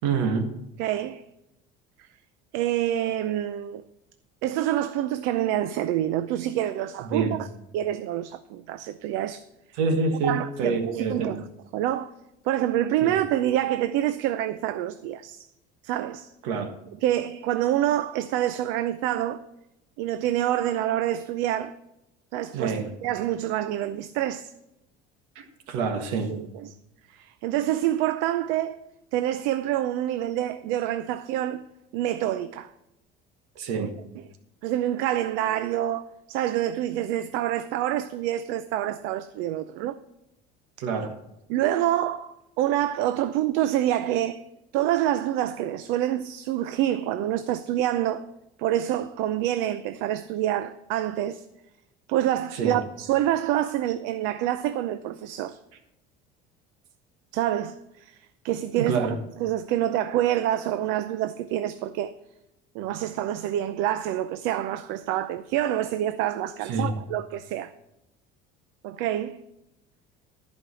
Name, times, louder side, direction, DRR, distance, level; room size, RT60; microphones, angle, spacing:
voice 1, 0.0-0.5 7.0-7.4 9.7-11.4 13.0-13.1 16.4-16.7 22.5-23.0 25.3-26.3 33.5-34.0 40.8-41.1 52.5-52.8 58.8-59.1 66.6-66.9, right 4 dB, 90° right, 1.6 m, -27 dB
voice 2, 0.8-1.2 2.0-2.1 2.5-3.8 4.4-7.5 7.7-9.4 10.2-11.4 11.7-12.1 12.4-15.5 15.8-16.3 17.0-19.4 20.0-21.7 22.3-22.7 23.0-24.5 26.3-26.7 27.1-28.8 29.1-31.6 31.9-32.7 33.7-33.9 34.6-40.0 41.5-44.4 44.7-48.2 48.6-51.4 52.1-55.6 57.3-58.2 58.4-59.1 59.4-62.1 62.7-67.7 68.8-69.4, right 12 dB, 70° right, 0.6 m, -27 dB
14.0 x 5.3 x 6.3 m
cardioid pair, 160°, 20 cm